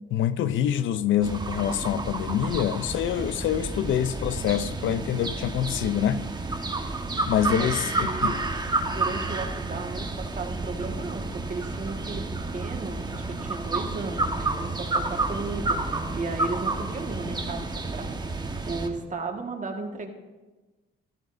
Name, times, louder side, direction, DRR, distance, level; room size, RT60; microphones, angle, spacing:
voice 1, 0.1-6.2 7.3-8.3, left 10 dB, 75° left, 0.5 m, -26 dB
sound 1, 1.2-18.9, right 2 dB, 20° right, 1.3 m, -30 dB
voice 2, 7.6-8.4 8.9-12.2 12.5-18.1 18.7-20.1, right 3 dB, 40° right, 1.6 m, -35 dB
14.0 x 14.0 x 2.6 m
cardioid pair, 90°, 20 cm